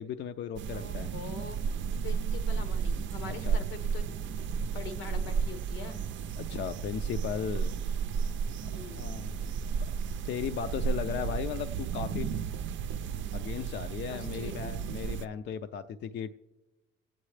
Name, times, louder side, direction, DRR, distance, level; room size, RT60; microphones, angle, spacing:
voice 1, 0.0-1.1 3.3-3.6 6.4-7.7 8.7-9.5 9.8-9.9 10.3-12.3 13.3-16.3, left 8 dB, 60° left, 9 dB, 0.5 m, -36 dB
sound 1, 0.6-15.3, right 6 dB, 75° right, 0.5 m, -33 dB
voice 2, 0.7-1.6 2.0-6.0 8.7-9.2 14.1-14.8, left 5 dB, 90° left, 9 dB, 1.0 m, -44 dB
24.5 x 8.9 x 3.3 m, 1.1 s
cardioid pair, 90°, 20 cm